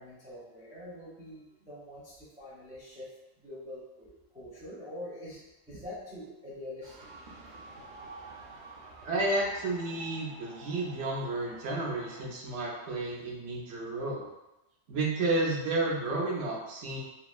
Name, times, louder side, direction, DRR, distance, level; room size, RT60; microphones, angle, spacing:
voice 1, 0.0-3.1 3.4-7.1, left 1 dB, 10° right, -8 dB, 0.4 m, -45 dB
sound 1, 6.8-12.2, right 3 dB, 55° right, 0.6 m, -49 dB
voice 2, 9.0-14.3 14.9-17.0, right 2 dB, 75° right, -2 dB, 1.0 m, -31 dB
2.8 x 2.4 x 2.3 m, 0.96 s
omnidirectional pair, 1.3 m